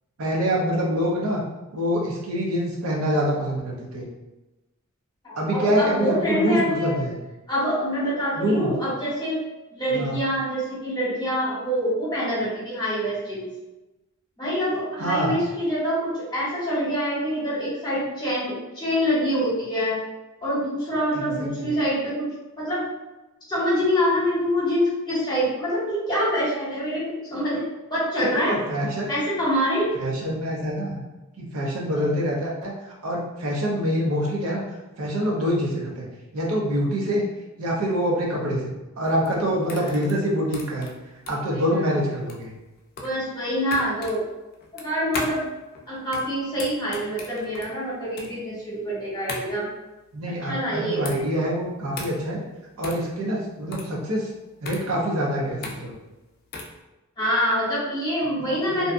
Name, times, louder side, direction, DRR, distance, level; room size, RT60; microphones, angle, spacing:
voice 1, 0.2-1.4 1.7-4.1 5.4-7.2 8.3-8.7 9.9-10.2 15.0-15.4 21.1-21.7 28.2-29.1 30.0-31.0 31.4-32.7 33.0-34.6 35.0-36.1 36.3-37.3 37.6-38.7 39.0-40.9 41.3-42.5 50.1-52.4 52.8-54.3 54.6-56.0 58.8-58.9, equal, 75° right, -2 dB, 0.6 m, -25 dB
voice 2, 5.2-7.0 7.5-9.4 9.7-13.5 14.4-20.0 20.4-22.9 23.5-28.6 29.1-29.9 39.7-39.9 41.5-41.7 43.0-44.2 44.7-45.5 45.9-49.7 50.5-51.1 57.2-58.9, equal, 20° left, -8 dB, 1.0 m, -25 dB
sound 1, 39.0-56.8, left 3 dB, 45° left, 0.4 m, -38 dB
2.6 x 2.3 x 2.5 m, 1.1 s
head